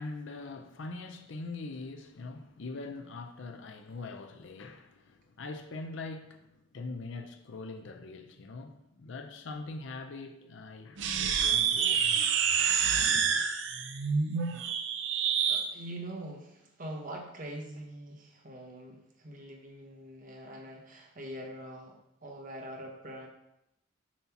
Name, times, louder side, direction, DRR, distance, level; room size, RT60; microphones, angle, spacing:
voice 1, 0.0-12.1 13.0-13.3, left 3 dB, 60° left, 0.5 m, -42 dB
sound 1, 11.0-15.7, right 7 dB, 60° right, 0.5 m, -27 dB
voice 2, 15.5-23.3, right 1 dB, 40° right, 1.0 m, -44 dB
7.2 x 2.8 x 5.8 m
head